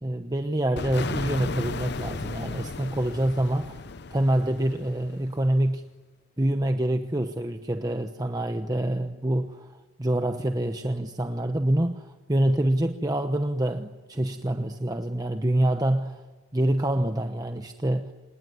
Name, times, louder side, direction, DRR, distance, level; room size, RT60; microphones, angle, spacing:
voice 1, 0.0-3.8 4.1-5.8 6.4-9.7 10.0-16.2 16.5-18.1, right 1 dB, 20° right, 7 dB, 1.0 m, -26 dB
sound 1, 0.8-5.4, left 3 dB, 55° left, 0.8 m, -35 dB
27.0 x 20.5 x 9.7 m, 1.4 s
head